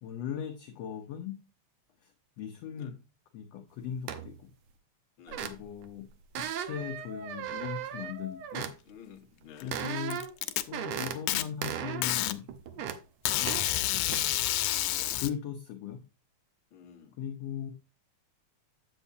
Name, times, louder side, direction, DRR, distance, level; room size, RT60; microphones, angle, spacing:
voice 1, 0.0-1.4 2.0-2.1 2.4-3.0 3.3-4.5 5.4-6.1 6.6-8.7 9.6-10.2 10.6-12.9 13.4-14.2 14.9-16.0 17.2-17.7, left 9 dB, 70° left, 1.7 m, -39 dB
sound 1, 4.1-4.4 5.3-5.9 6.3-8.7 9.7-10.4 10.7-11.2 11.6-12.1 12.5-13.0 13.5-13.7 14.1-14.3, right 9 dB, 70° right, 1.8 m, -37 dB
voice 2, 5.2-5.6 8.9-9.7 14.9-15.2 16.7-17.1, left 8 dB, 55° left, 1.6 m, -51 dB
Packing tape duct tape, 9.6-10.6 11.3-11.4 12.0-12.4 13.3-15.3, left 14 dB, 90° left, 2.1 m, -29 dB
8.1 x 8.0 x 2.8 m
omnidirectional pair, 3.5 m